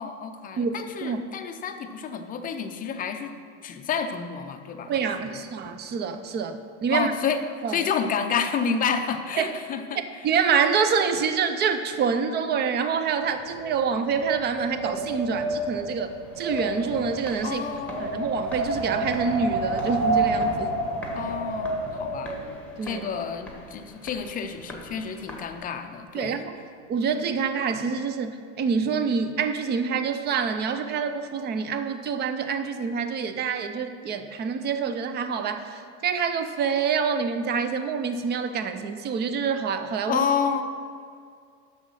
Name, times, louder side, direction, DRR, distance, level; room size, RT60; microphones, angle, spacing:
voice 1, 0.0-3.3 3.6-4.9 5.2-5.4 6.9-7.4 7.7-10.0 17.4-18.4 21.1-22.4 22.8-26.4 40.1-40.6, left 6 dB, 20° left, 6 dB, 0.5 m, -29 dB
voice 2, 0.6-1.2 4.9-6.6 6.8-7.1 7.6-7.8 9.4-9.5 10.2-17.6 18.0-20.7 22.8-23.0 26.1-26.5 26.9-40.2, right 6 dB, 25° right, 9 dB, 0.5 m, -26 dB
Wind, 13.3-22.5, right 2 dB, 60° right, 2.1 m, -29 dB
sound 1, 16.0-26.0, left 1 dB, 5° left, 1.2 m, -44 dB
7.9 x 6.4 x 6.2 m, 2.3 s
supercardioid pair, 140°, 38 cm